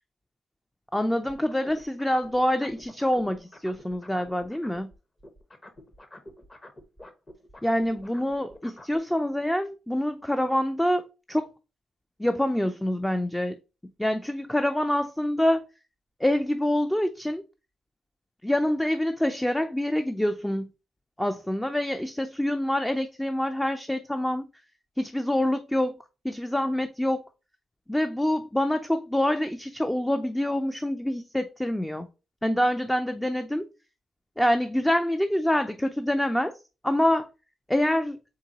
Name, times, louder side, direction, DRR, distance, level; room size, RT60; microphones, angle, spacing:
voice 1, 0.9-4.9 7.6-11.5 12.2-13.6 14.0-15.7 16.2-17.4 18.4-20.7 21.2-24.5 25.0-26.0 26.2-27.2 27.9-32.1 32.4-33.7 34.4-36.6 36.8-37.3 37.7-38.2, left 1 dB, 5° left, 0.4 m, -26 dB
sound 1, 1.3-4.9 5.2-9.0, left 1 dB, 25° left, 0.9 m, -48 dB
3.7 x 3.7 x 2.8 m
cardioid pair, 75°, 0 cm